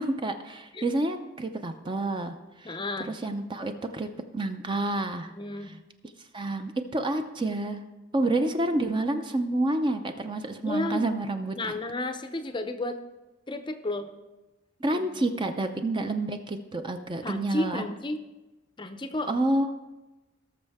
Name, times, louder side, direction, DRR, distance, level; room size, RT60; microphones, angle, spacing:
voice 1, 0.0-2.8 3.0-4.1 4.3-5.3 5.6-5.7 6.3-7.8 8.1-11.7 14.8-17.8 19.3-19.7, right 2 dB, 25° right, 7 dB, 0.5 m, -29 dB
voice 2, 2.6-3.1 5.4-5.8 10.6-11.1 11.6-13.0 13.5-14.1 14.9-15.0 17.2-18.2 18.8-19.3, left 2 dB, 25° left, 9 dB, 0.6 m, -32 dB
18.5 x 6.5 x 3.5 m, 1.1 s
head